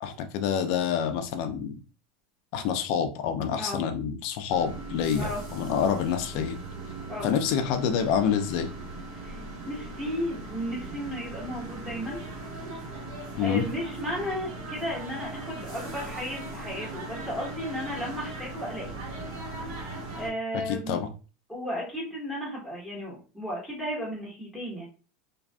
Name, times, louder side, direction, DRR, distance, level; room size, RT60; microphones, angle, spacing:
voice 1, 0.0-1.7 2.5-6.6 7.2-8.7 13.3-13.6 20.7-21.1, left 7 dB, 55° left, 7 dB, 0.4 m, -27 dB
sound 1, 4.5-20.3, right 2 dB, 65° right, 1.4 m, -39 dB
voice 2, 9.7-12.2 13.4-19.0 20.2-21.0 21.5-24.9, equal, 5° right, -6 dB, 1.1 m, -34 dB
2.5 x 2.4 x 2.3 m, 0.35 s
supercardioid pair, 150°, 0 cm